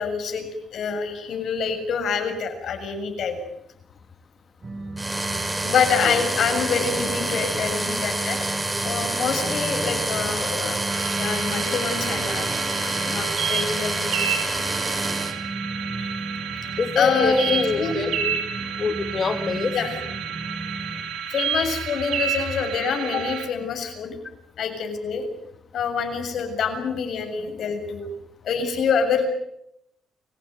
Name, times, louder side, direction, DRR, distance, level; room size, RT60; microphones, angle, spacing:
voice 1, 0.0-3.4 5.6-8.4 8.8-10.8 11.1-12.5 13.1-14.1 16.0-16.1 17.0-18.0 19.7-20.0 21.3-24.2 24.6-25.2 25.7-28.1 28.4-29.3, left 6 dB, 65° left, 6 dB, 7.1 m, -26 dB
sound 1, 4.6-21.0, right 2 dB, 35° right, 6.5 m, -36 dB
sound 2, 5.0-15.3, right 2 dB, 15° right, 5.7 m, -27 dB
sound 3, 10.9-23.5, right 7 dB, 85° right, 5.0 m, -30 dB
voice 2, 16.8-18.4 18.8-19.7, left 5 dB, 40° left, 8 dB, 2.0 m, -25 dB
29.0 x 16.5 x 9.4 m, 0.81 s
cardioid pair, 90°, 0 cm